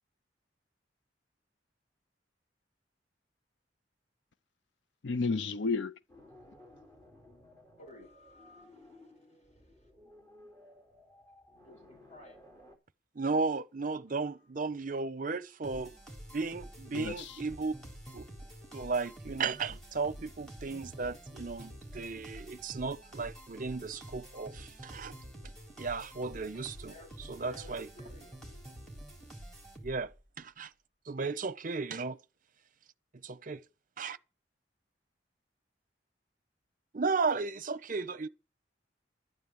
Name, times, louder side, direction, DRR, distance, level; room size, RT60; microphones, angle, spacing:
voice 1, 5.0-5.9 16.9-17.4, left 4 dB, 75° left, 0.6 m, -32 dB
sound 1, 6.1-12.8, left 1 dB, 20° left, 3.7 m, -57 dB
voice 2, 7.8-9.1 11.6-12.4 14.1-14.2 26.8-28.7, left 2 dB, 40° left, 7.4 m, -55 dB
voice 3, 13.2-15.9 16.3-17.7 18.1-18.3 18.7-25.1 25.8-26.9 27.3-27.9 29.8-30.1 30.4-30.7 31.1-32.2 33.2-33.6 34.0-34.2 36.9-38.3, right 4 dB, 45° right, 0.7 m, -35 dB
sound 2, 15.6-30.2, right 1 dB, 5° left, 3.9 m, -48 dB
12.5 x 9.6 x 7.6 m
head